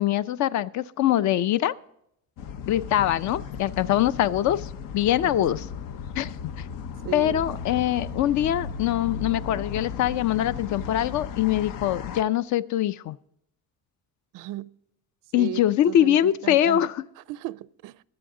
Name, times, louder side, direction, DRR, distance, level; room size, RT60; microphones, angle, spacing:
voice 1, 0.0-1.7 2.7-5.6 6.2-6.5 7.1-13.2 15.3-17.0, left 12 dB, 65° left, 0.5 m, -23 dB
sound 1, 2.4-12.2, left 6 dB, 90° left, 0.9 m, -36 dB
voice 2, 7.0-7.5 14.3-14.7 15.3-16.9 17.3-18.0, right 14 dB, 85° right, 0.5 m, -36 dB
22.0 x 7.9 x 3.7 m
cardioid pair, 165°, 32 cm